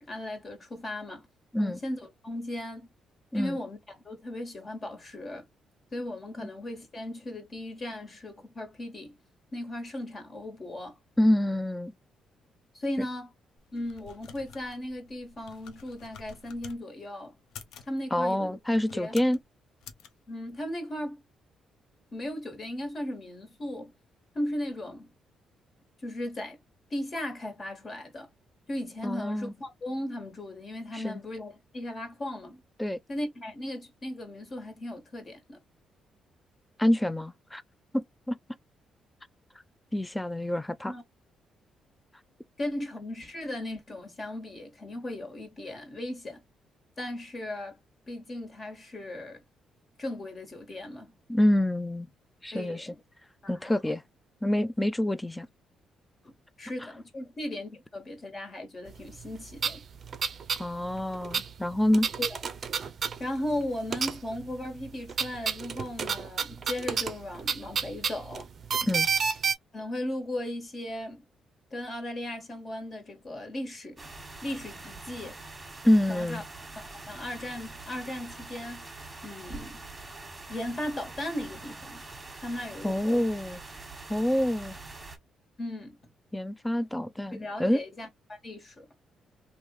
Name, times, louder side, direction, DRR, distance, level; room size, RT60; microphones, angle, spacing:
voice 1, 0.0-1.3 1.6-2.9 3.3-5.5 5.9-9.2 9.5-11.0 12.7-13.3 13.7-17.3 17.9-18.6 18.9-19.1 20.3-21.2 22.1-23.9 24.3-25.1 26.0-26.6 26.9-28.3 28.7-32.6 33.1-35.6 40.8-41.0 42.6-46.4 47.0-47.8 48.1-49.4 50.0-51.2 52.5-53.0 53.4-53.8 56.2-59.8 62.2-62.4 63.2-68.5 69.7-71.2 71.7-74.1 74.4-75.4 76.1-76.4 76.8-78.8 79.2-79.8 80.5-82.0 82.4-83.3 85.6-86.0 87.3-88.9, left 1 dB, 40° left, 1.7 m, -37 dB
voice 2, 11.2-11.9 18.1-19.4 29.0-29.5 30.9-31.2 32.8-33.0 36.8-37.6 37.9-38.4 39.9-40.9 51.3-52.1 52.4-52.9 53.5-54.0 54.4-55.5 60.6-62.1 68.8-69.1 75.8-76.4 82.8-83.6 84.1-84.8 86.3-87.8, left 1 dB, 10° left, 0.3 m, -27 dB
sound 1, 13.6-16.8 17.4-17.9 18.6-19.4 19.8-20.1, left 7 dB, 85° left, 0.6 m, -49 dB
sound 2, 59.2-59.3 59.5-60.7 60.9-63.6 63.9-64.5 64.8-69.5, right 6 dB, 50° right, 0.5 m, -30 dB
sound 3, 74.0-85.2, right 3 dB, 20° right, 1.3 m, -44 dB
3.1 x 2.6 x 3.1 m
cardioid pair, 90°, 0 cm